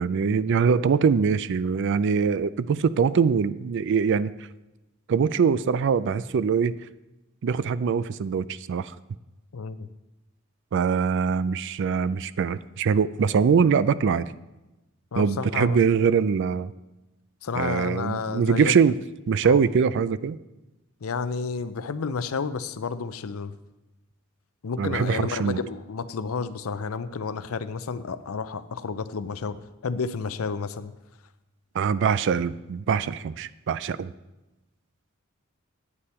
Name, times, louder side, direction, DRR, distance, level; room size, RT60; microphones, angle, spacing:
voice 1, 0.0-4.3 5.1-6.8 7.4-8.9 10.7-14.3 15.2-16.7 17.6-19.0 19.3-20.4 24.8-25.6 31.7-34.1, right 6 dB, 60° right, 16 dB, 0.4 m, -23 dB
voice 2, 9.5-9.9 15.1-15.8 17.4-18.7 19.4-19.6 21.0-23.5 24.6-29.6 29.8-30.9, left 5 dB, 80° left, 13 dB, 0.5 m, -31 dB
9.7 x 8.3 x 4.3 m, 1.0 s
head